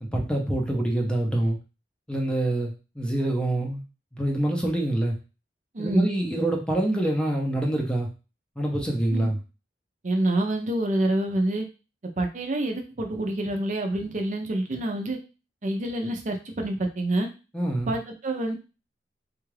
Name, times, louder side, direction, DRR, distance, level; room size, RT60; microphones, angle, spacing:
voice 1, 0.0-1.6 2.1-3.8 4.1-5.2 5.8-8.1 8.6-9.4 17.5-17.9, right 1 dB, 5° left, 0 dB, 0.6 m, -26 dB
voice 2, 5.7-6.1 9.1-9.3 10.0-11.6 12.2-15.2 15.6-17.3 17.9-18.6, right 1 dB, 45° right, 3 dB, 0.5 m, -27 dB
3.5 x 2.3 x 3.2 m, 0.31 s
head